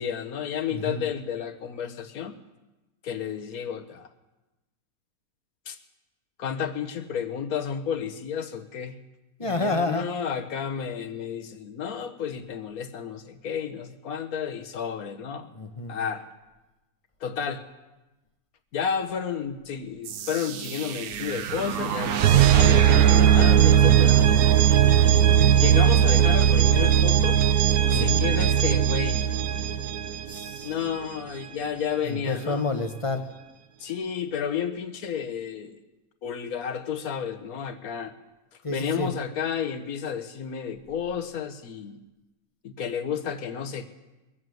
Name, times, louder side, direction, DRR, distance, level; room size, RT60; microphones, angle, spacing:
voice 1, 0.0-2.4 3.0-4.1 5.7-5.8 6.4-9.0 9.4-15.5 15.9-16.2 17.2-17.7 18.7-24.2 25.6-27.4 27.9-29.2 30.6-32.6 33.8-35.8 36.2-38.1 38.7-42.0 42.6-43.9, left 7 dB, 75° left, 7 dB, 1.5 m, -31 dB
voice 2, 0.7-1.0 9.4-10.1 15.5-15.9 27.9-28.2 30.3-30.7 32.0-33.3 38.6-39.1, left 3 dB, 25° left, 7 dB, 0.9 m, -29 dB
sound 1, 20.1-30.9, right 10 dB, 85° right, 1.3 m, -19 dB
21.5 x 7.8 x 7.8 m, 1.1 s
omnidirectional pair, 1.6 m